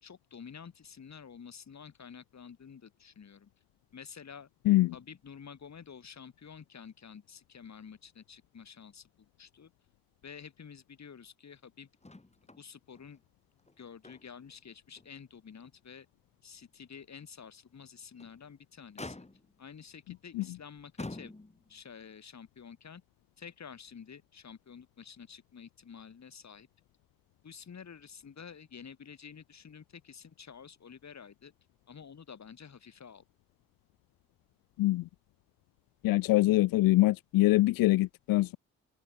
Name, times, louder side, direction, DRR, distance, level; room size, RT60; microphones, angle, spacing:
voice 1, 0.0-3.5 3.9-4.5 4.9-9.7 10.2-11.9 12.6-13.2 13.8-16.1 16.4-19.3 19.6-21.3 21.7-23.0 23.4-26.7 27.4-31.5 31.9-33.2, left 6 dB, 55° left, 3.7 m, -50 dB
Motor vehicle (road), 12.0-12.6 13.0-13.1 13.6-14.5 15.0-15.1 15.6-15.7 17.9-18.4 19.0-19.6 20.4-20.6 21.0-21.8 22.8-22.9, left 2 dB, 20° left, 5.5 m, -46 dB
voice 2, 34.8-35.1 36.0-38.6, left 18 dB, 85° left, 0.6 m, -24 dB
supercardioid pair, 55°, 33 cm